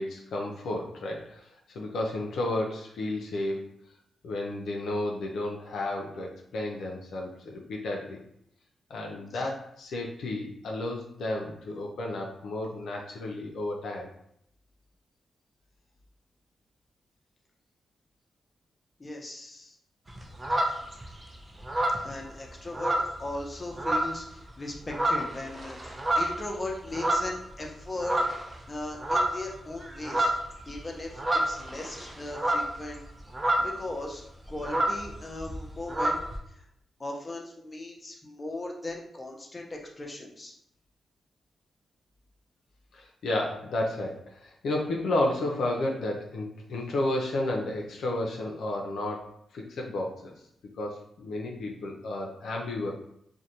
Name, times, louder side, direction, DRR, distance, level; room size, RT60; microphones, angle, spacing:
voice 1, 0.0-1.4 1.7-3.6 4.2-8.2 8.9-14.1 42.9-50.3 50.8-52.9, left 1 dB, 80° left, -1 dB, 0.4 m, -32 dB
voice 2, 19.0-19.8 22.0-28.2 28.7-30.3 30.7-33.0 33.6-34.2 34.5-36.2 36.5-36.6 37.0-40.5, left 2 dB, 30° left, 0 dB, 0.6 m, -38 dB
sound 1, 20.1-21.2 21.6-23.5 23.8-24.3 24.7-27.7 28.0-28.6 28.8-33.9 34.2-34.3 34.5-36.4, right 1 dB, 25° right, 0.5 m, -29 dB
2.5 x 2.0 x 2.7 m, 0.71 s
cardioid pair, 60°, 0 cm